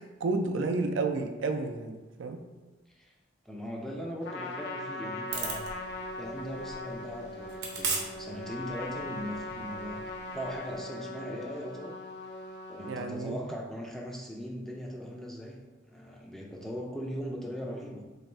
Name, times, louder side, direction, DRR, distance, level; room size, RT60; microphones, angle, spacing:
voice 1, 0.2-2.4 12.8-13.5, right 3 dB, 80° right, 6 dB, 0.4 m, -31 dB
voice 2, 3.5-5.7 6.2-10.1 10.3-11.9 12.7-15.6 15.9-18.0, equal, ahead, -2 dB, 0.3 m, -39 dB
Trumpet, 4.2-13.0, left 2 dB, 65° left, 0.4 m, -40 dB
sound 1, 5.3-10.8, right 4 dB, 60° right, 0.7 m, -39 dB
3.2 x 2.4 x 4.2 m, 1.2 s
head